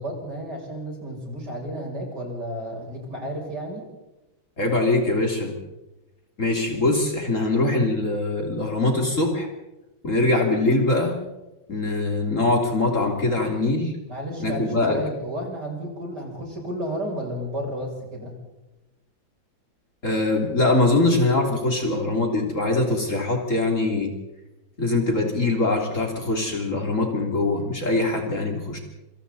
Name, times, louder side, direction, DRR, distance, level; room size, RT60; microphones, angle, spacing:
voice 1, 0.0-3.9 14.1-18.3, equal, 55° right, -1 dB, 8.0 m, -32 dB
voice 2, 4.6-5.6 6.4-9.5 10.0-11.2 11.7-13.9 14.4-15.0 20.0-24.1 24.8-28.8, left 2 dB, 40° left, 1 dB, 3.6 m, -22 dB
27.5 x 27.0 x 4.2 m, 0.99 s
omnidirectional pair, 2.2 m